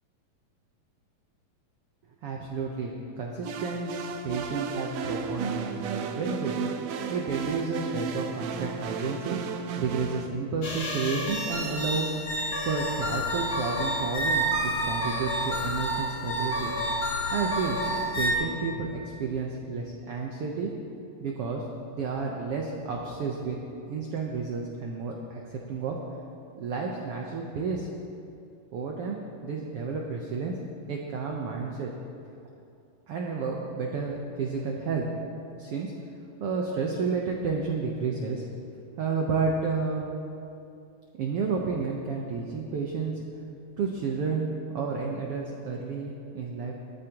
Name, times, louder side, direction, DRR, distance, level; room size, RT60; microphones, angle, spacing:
voice 1, 2.2-6.6 7.1-9.4 9.8-12.1 12.6-16.7 17.3-17.8 18.2-20.7 21.2-21.6 21.9-23.6 23.9-26.0 26.5-27.9 28.7-30.5 30.9-31.9 33.1-35.1 35.6-35.9 36.4-38.4 39.0-40.1 41.2-43.2 43.8-44.5 44.7-46.7, right 4 dB, 70° right, -1 dB, 1.4 m, -31 dB
sound 1, 3.4-10.3, right 6 dB, 85° right, 1.4 m, -33 dB
sound 2, 10.6-18.3, equal, 35° left, 3.0 m, -29 dB
21.5 x 13.5 x 3.0 m, 2.6 s
omnidirectional pair, 4.0 m